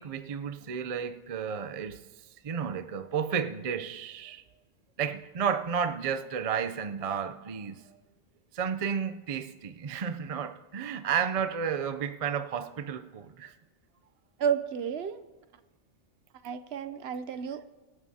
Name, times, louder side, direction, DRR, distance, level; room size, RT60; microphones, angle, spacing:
voice 1, 0.0-2.0 2.4-4.4 5.0-7.9 8.5-13.5, right 7 dB, 45° right, 0.5 m, -32 dB
voice 2, 14.4-15.2 16.4-17.6, right 7 dB, 65° right, 0.8 m, -31 dB
25.0 x 9.6 x 2.8 m
omnidirectional pair, 1.2 m